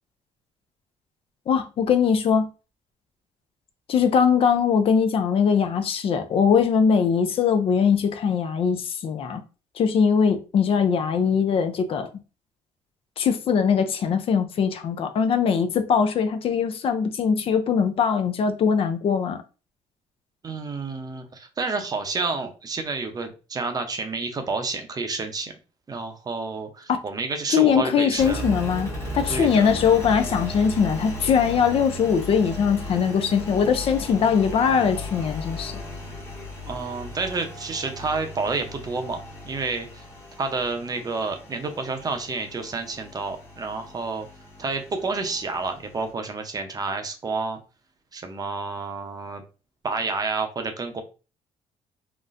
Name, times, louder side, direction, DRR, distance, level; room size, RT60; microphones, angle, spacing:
voice 1, 1.5-2.5 3.9-9.4 9.8-12.1 13.2-19.4 26.9-27.0 27.5-35.7, left 6 dB, 50° left, 0.5 m, -21 dB
voice 2, 20.4-25.5 25.9-28.5 29.3-29.7 36.7-40.0 40.4-44.3 44.6-47.6 48.1-49.4 49.8-51.0, right 3 dB, 30° right, 0.7 m, -29 dB
Engine, 28.2-46.1, equal, 20° left, 1.0 m, -36 dB
3.9 x 2.1 x 2.5 m
cardioid pair, 95°, 12 cm